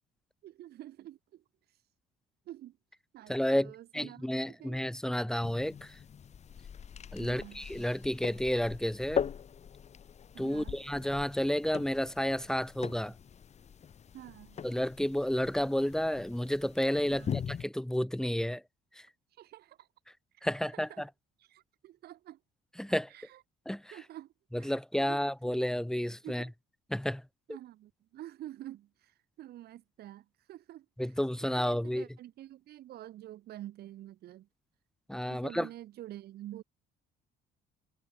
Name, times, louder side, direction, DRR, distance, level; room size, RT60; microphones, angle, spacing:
voice 1, 0.4-1.4 2.5-2.8 3.1-4.2 4.6-4.8 7.2-7.7 10.3-10.8 14.1-14.6 17.1-17.4 19.4-19.9 20.4-21.0 21.5-22.4 23.1-23.4 23.9-24.3 24.6-24.7 25.0-25.2 26.2-26.5 27.5-30.9 31.5-34.5 35.3-36.6, right 13 dB, 70° right, 5.7 m, -48 dB
voice 2, 3.3-6.0 7.1-9.2 10.4-13.1 14.6-17.3 17.6-18.6 19.0-19.1 20.4-21.1 22.8-23.1 23.6-23.9 24.5-26.5 26.9-27.2 31.0-32.0 35.1-35.7, equal, 5° left, 3.4 m, -31 dB
sound 1, 5.4-17.6, left 8 dB, 40° left, 2.5 m, -41 dB
cardioid pair, 110°, 17 cm